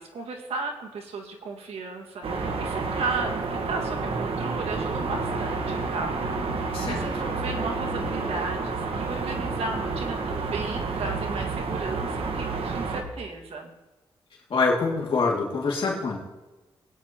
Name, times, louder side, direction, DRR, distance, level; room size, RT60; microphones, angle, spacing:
voice 1, 0.0-6.1 6.4-6.5 6.8-13.7, right 3 dB, 85° right, 2 dB, 1.9 m, -35 dB
sound 1, 2.2-13.0, right 4 dB, 70° right, 1.5 m, -29 dB
voice 2, 14.5-16.2, left 4 dB, 65° left, -3 dB, 2.4 m, -25 dB
20.5 x 9.6 x 3.0 m, 1.1 s
cardioid pair, 75°, 10 cm